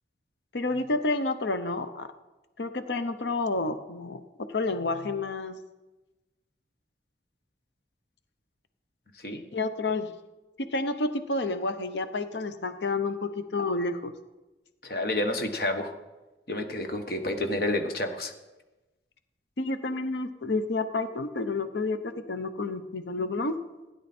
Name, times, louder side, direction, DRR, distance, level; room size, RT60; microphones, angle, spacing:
voice 1, 0.5-2.1 2.6-5.6 9.5-10.1 10.6-14.1 19.6-23.6, left 3 dB, 85° left, 10 dB, 0.8 m, -30 dB
voice 2, 14.8-15.9 16.5-18.3, left 1 dB, 55° left, 5 dB, 1.4 m, -29 dB
16.0 x 10.0 x 4.3 m, 1.1 s
head